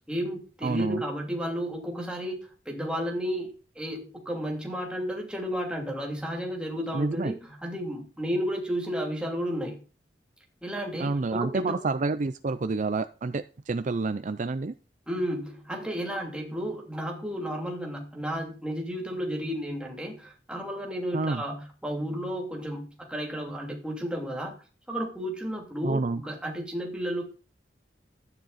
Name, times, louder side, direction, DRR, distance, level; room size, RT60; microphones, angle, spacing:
voice 1, 0.1-2.4 2.7-9.8 10.6-11.8 15.1-24.6 24.9-27.2, equal, 5° right, 0 dB, 2.9 m, -32 dB
voice 2, 0.6-1.0 6.9-7.3 11.0-14.8 21.1-21.4 25.8-26.2, right 3 dB, 45° right, 13 dB, 0.5 m, -28 dB
13.0 x 9.2 x 4.1 m, 0.36 s
head